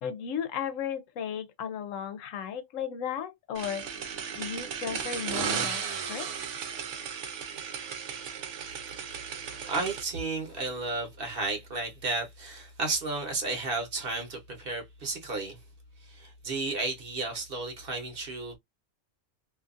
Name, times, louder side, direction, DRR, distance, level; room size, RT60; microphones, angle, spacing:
voice 1, 0.0-3.9 4.3-6.3, left 8 dB, 80° left, 1.0 m, -35 dB
sound 1, 3.5-10.0, right 7 dB, 75° right, 1.0 m, -35 dB
voice 2, 9.6-15.6 16.0-18.6, right 3 dB, 50° right, 1.1 m, -33 dB
2.6 x 2.4 x 2.5 m
omnidirectional pair, 1.3 m